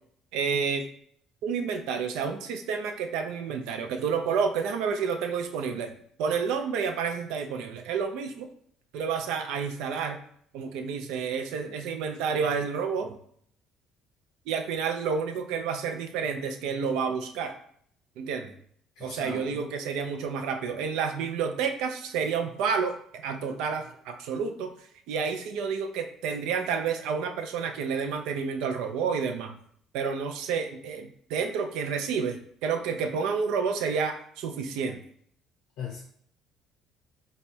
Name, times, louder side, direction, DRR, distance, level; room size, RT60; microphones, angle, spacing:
voice 1, 0.3-0.8 1.4-5.9 6.2-8.5 8.9-10.2 10.5-13.2 14.5-17.5 18.2-18.5 19.0-23.0 23.2-24.7 25.1-29.5 29.9-35.0, right 6 dB, 80° right, 6 dB, 0.4 m, -30 dB
voice 2, 19.0-19.7 35.8-36.0, left 6 dB, 75° left, -2 dB, 0.7 m, -38 dB
3.2 x 2.3 x 4.2 m, 0.63 s
supercardioid pair, 80°, 0 cm